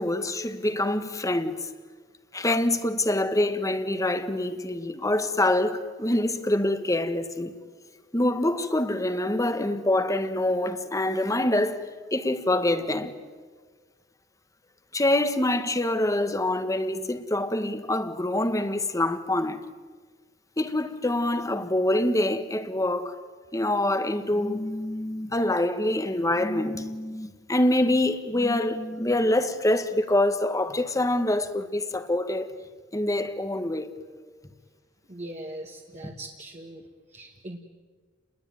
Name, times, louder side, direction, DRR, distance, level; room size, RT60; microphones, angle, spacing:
voice 1, 0.0-1.7 2.3-7.5 8.1-13.1 14.9-19.6 20.6-23.2 23.5-32.5 32.9-33.9, left 1 dB, 15° left, 1.5 m, -25 dB
voice 2, 35.1-37.6, right 1 dB, 35° right, 1.9 m, -41 dB
30.0 x 21.5 x 9.3 m
head